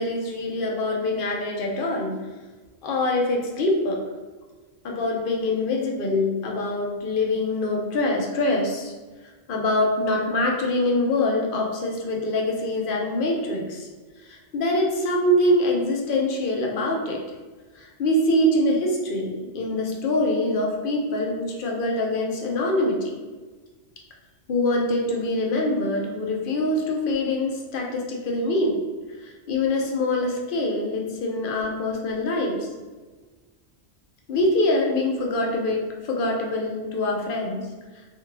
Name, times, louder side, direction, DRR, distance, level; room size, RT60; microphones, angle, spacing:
voice 1, 0.0-2.2 2.8-4.0 4.8-8.9 9.5-13.9 14.2-17.4 17.8-23.1 24.5-28.8 29.2-32.7 34.3-37.7, left 1 dB, 60° left, 0 dB, 0.7 m, -24 dB
2.5 x 2.5 x 3.0 m, 1.3 s
omnidirectional pair, 1.2 m